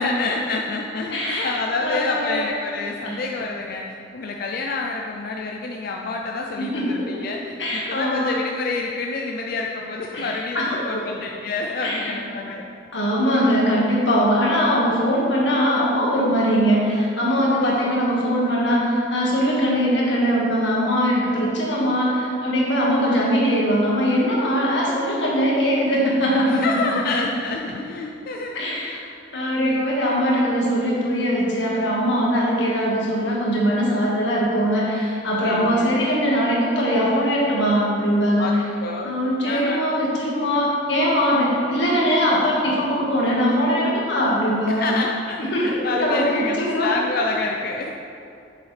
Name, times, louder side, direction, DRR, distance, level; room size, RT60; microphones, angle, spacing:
voice 1, 0.0-3.9 4.1-12.6 17.6-18.0 26.5-28.6 28.8-28.9 29.5-29.8 35.4-35.9 38.4-39.2 39.4-39.8 41.5-41.6 44.7-47.9, left 3 dB, 55° left, 0 dB, 0.4 m, -28 dB
voice 2, 1.1-2.4 3.0-3.2 6.6-7.2 7.6-8.4 10.1-11.0 11.8-12.1 12.9-27.0 28.5-29.1 29.3-38.5 39.0-44.9 45.4-46.9, equal, 90° left, -4 dB, 1.7 m, -21 dB
7.1 x 6.6 x 3.3 m, 2.6 s
head